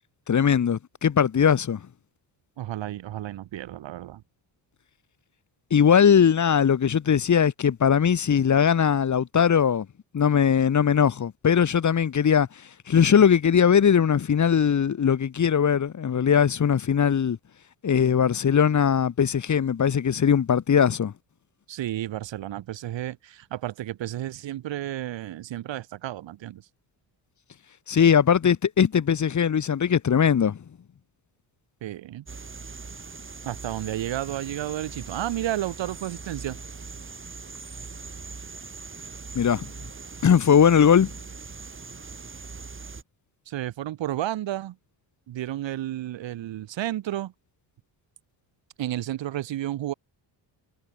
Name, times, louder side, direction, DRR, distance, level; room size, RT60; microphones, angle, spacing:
voice 1, 0.3-1.8 5.7-9.9 10.1-12.5 12.9-17.4 17.8-21.1 27.9-30.6 39.4-39.7 40.2-41.1, left 7 dB, 40° left, 2.1 m, -20 dB
voice 2, 2.6-4.2 21.7-26.6 31.8-32.2 33.4-36.6 43.5-44.8 45.3-47.3 48.8-49.9, right 13 dB, 75° right, 7.0 m, -32 dB
sound 1, 32.3-43.0, right 4 dB, 25° right, 6.8 m, -41 dB
cardioid pair, 105°, 45 cm